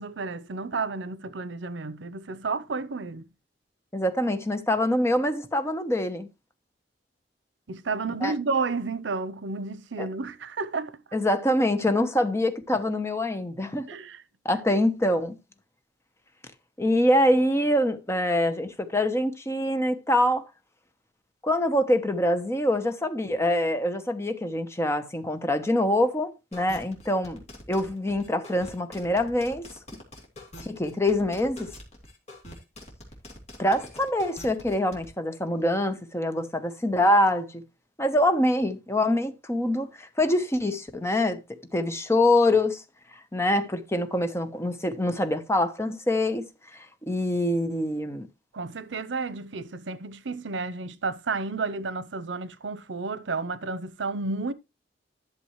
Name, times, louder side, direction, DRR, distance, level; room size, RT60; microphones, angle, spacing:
voice 1, 0.0-3.3 7.7-11.0 13.9-14.2 48.5-54.5, right 4 dB, 90° right, 0.7 m, -31 dB
voice 2, 3.9-6.3 8.2-8.3 10.0-10.1 11.1-13.9 14.4-15.3 16.8-20.5 21.4-27.4 27.7-29.6 30.6-31.7 33.6-37.5 38.0-41.4 41.7-42.8 43.3-46.5 46.7-48.3, left 1 dB, 15° left, 0.9 m, -25 dB
sound 1, 26.5-35.1, left 1 dB, 40° left, 2.9 m, -45 dB
11.5 x 6.9 x 3.1 m
head